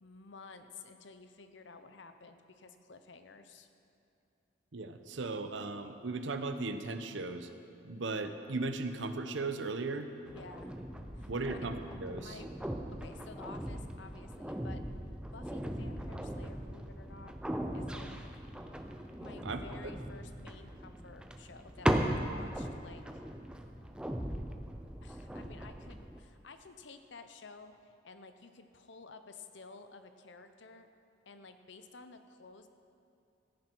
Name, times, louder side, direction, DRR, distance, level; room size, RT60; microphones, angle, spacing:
voice 1, 0.0-3.7 10.3-10.7 11.1-11.6 12.2-12.5 13.0-14.8 15.3-17.3 17.7-18.1 19.2-23.2 25.0-30.9 31.3-32.7, left 4 dB, 70° left, 9 dB, 0.7 m, -52 dB
voice 2, 4.7-7.5 7.8-10.1 11.3-12.4 19.4-19.6, right 3 dB, 75° right, 8 dB, 0.8 m, -37 dB
sound 1, 10.3-26.2, equal, 5° right, 0.5 m, -38 dB
14.0 x 10.5 x 4.6 m, 2.8 s
head